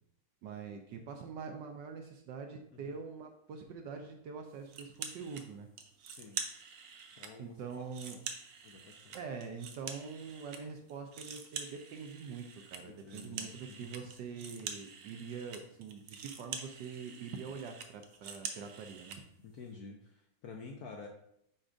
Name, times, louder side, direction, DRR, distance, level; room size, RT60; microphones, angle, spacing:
voice 1, 0.4-5.7 7.4-8.2 9.1-19.2, right 5 dB, 70° right, 4 dB, 1.1 m, -44 dB
sound 1, 4.7-5.4 5.8-7.3 7.7-10.6 10.9-19.2, right 5 dB, 90° right, 0.7 m, -45 dB
voice 2, 6.1-6.4 7.2-7.6 8.6-9.2 12.9-13.9 19.4-21.1, left 4 dB, 65° left, 2 dB, 0.9 m, -50 dB
8.6 x 4.9 x 2.5 m, 0.74 s
omnidirectional pair, 2.3 m